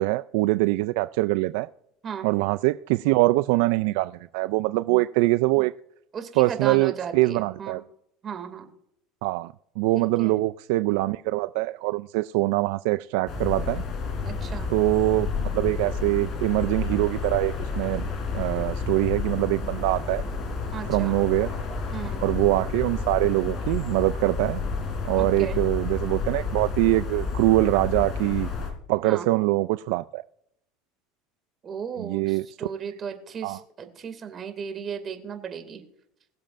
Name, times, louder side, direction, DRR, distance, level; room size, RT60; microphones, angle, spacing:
voice 1, 0.0-1.7 2.2-5.7 6.4-7.8 9.2-13.8 14.7-15.3 15.5-18.0 18.3-20.2 20.8-21.5 22.2-24.6 25.0-28.5 28.9-30.2 32.0-32.4 33.4-33.6, right 19 dB, 75° right, 0.3 m, -23 dB
voice 2, 6.1-7.8 8.2-8.6 10.0-10.4 14.2-14.7 20.7-21.1 21.9-22.2 25.1-25.6 29.0-29.3 31.6-35.8, right 7 dB, 35° right, 2.4 m, -35 dB
sound 1, 13.3-28.7, left 4 dB, 45° left, 3.7 m, -30 dB
21.5 x 7.4 x 2.6 m
supercardioid pair, 120°, 0 cm